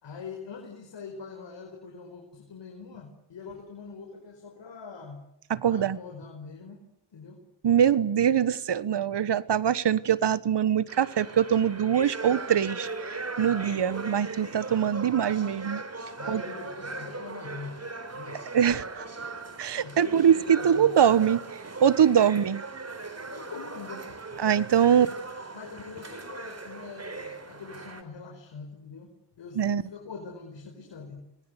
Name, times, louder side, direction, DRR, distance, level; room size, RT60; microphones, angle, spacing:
voice 1, 0.0-5.2 5.7-6.8 7.1-7.4 16.2-17.8 18.1-18.4 19.5-20.9 23.3-24.2 24.9-25.2 25.5-31.2, left 5 dB, 70° left, 2 dB, 5.0 m, -43 dB
voice 2, 5.5-6.0 7.6-15.8 16.3-16.4 18.5-19.1 19.6-22.6 24.4-25.1 29.6-29.8, right 8 dB, 65° right, 18 dB, 1.3 m, -23 dB
sound 1, 10.9-28.0, right 3 dB, 35° right, 3.9 m, -39 dB
25.0 x 21.0 x 8.2 m, 0.86 s
cardioid pair, 70°, 45 cm